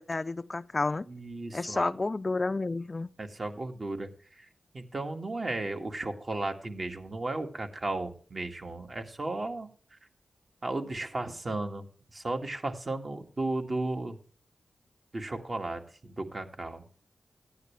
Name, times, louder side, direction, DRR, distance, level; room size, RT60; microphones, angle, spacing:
voice 1, 0.0-1.1 1.5-3.1, left 3 dB, 40° left, 0.4 m, -30 dB
voice 2, 1.1-1.9 3.2-4.1 4.4-4.5 4.7-10.0 10.6-11.9 12.1-14.2 15.1-16.8, right 2 dB, 45° right, 2.0 m, -35 dB
14.5 x 9.5 x 3.4 m
cardioid pair, 55°, 0 cm